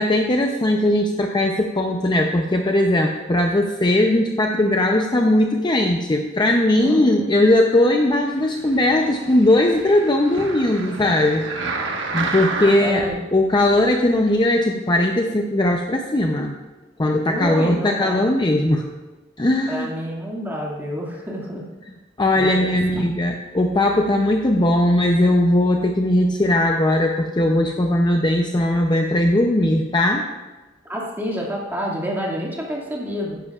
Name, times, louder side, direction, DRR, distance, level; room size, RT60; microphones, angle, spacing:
voice 1, 0.0-16.5 17.0-18.9 19.4-19.9 22.2-30.2, left 1 dB, 25° left, 2 dB, 0.6 m, -19 dB
voice 2, 6.8-7.3 12.8-13.2 17.2-18.2 19.7-21.6 22.3-22.8 30.9-33.4, equal, 10° right, -4 dB, 2.2 m, -28 dB
sound 1, 8.5-13.1 13.7-13.8, right 3 dB, 70° right, 1.4 m, -30 dB
15.0 x 11.0 x 2.4 m, 1.2 s
head